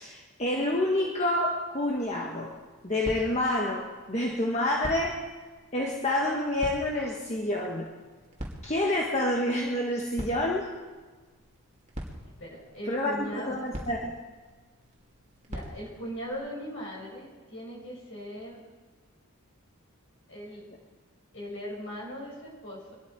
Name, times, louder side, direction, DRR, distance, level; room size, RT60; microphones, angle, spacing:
voice 1, 0.0-2.5 2.8-5.2 5.7-7.9 8.6-10.7 12.9-14.2, left 1 dB, 30° left, -1 dB, 1.4 m, -28 dB
sound 1, 1.8-16.3, right 1 dB, 30° right, 2.2 m, -45 dB
voice 2, 12.2-13.6 15.5-18.6 20.3-20.7 21.3-22.8, equal, 55° left, -2 dB, 5.9 m, -39 dB
23.0 x 12.5 x 4.7 m, 1.3 s
head